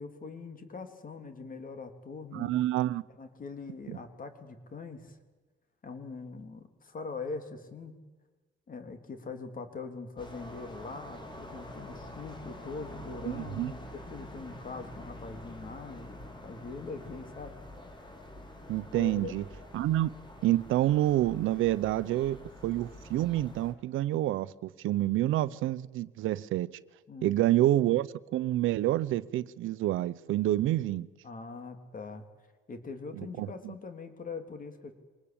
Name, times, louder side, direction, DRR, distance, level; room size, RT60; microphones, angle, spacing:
voice 1, 0.0-2.5 3.2-5.2 5.8-7.9 8.7-17.6 18.9-19.3 27.1-27.4 31.2-32.2 32.7-34.9, left 4 dB, 45° left, 3.5 m, -42 dB
voice 2, 2.3-3.0 3.9-4.0 13.3-13.7 18.7-19.4 19.7-20.1 20.4-26.7 27.2-31.1 33.2-33.7, right 14 dB, 85° right, 0.8 m, -28 dB
sound 1, 10.2-23.7, left 1 dB, 25° left, 4.2 m, -47 dB
24.0 x 20.0 x 8.9 m
cardioid pair, 90°, 20 cm